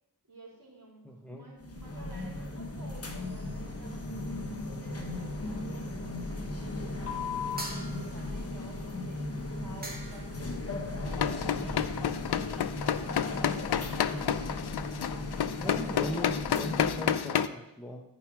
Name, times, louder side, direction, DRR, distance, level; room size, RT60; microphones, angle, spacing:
voice 1, 0.3-3.9 4.7-10.5 11.0-14.0, right 1 dB, 60° right, -4 dB, 3.7 m, -51 dB
voice 2, 1.0-1.5 11.6-11.7 15.6-18.0, equal, 5° left, 1 dB, 1.0 m, -39 dB
sound 1, 1.6-17.2, left 2 dB, 40° left, 1.2 m, -37 dB
sound 2, 7.6-8.4 9.5-9.6 9.8-10.4, right 1 dB, 25° right, 2.0 m, -41 dB
sound 3, 11.1-17.5, left 9 dB, 80° left, 0.5 m, -30 dB
14.0 x 5.0 x 4.7 m, 0.85 s
wide cardioid pair, 70°, 38 cm